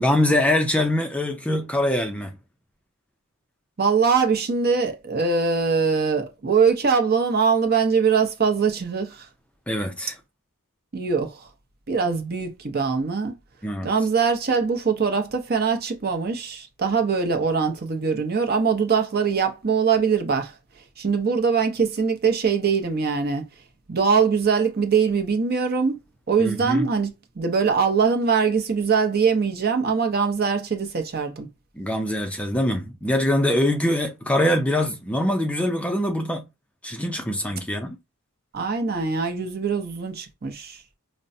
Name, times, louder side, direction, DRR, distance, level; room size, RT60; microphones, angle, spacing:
voice 1, 0.0-2.3 9.7-10.1 13.6-13.9 26.4-26.9 31.8-36.5 36.8-38.0, left 1 dB, 5° left, 0.4 m, -23 dB
voice 2, 3.8-9.3 10.9-11.5 11.9-13.3 13.8-20.5 21.0-23.5 23.9-26.0 26.3-31.5 38.5-40.8, right 5 dB, 45° right, 0.7 m, -22 dB
5.1 x 2.1 x 2.6 m
head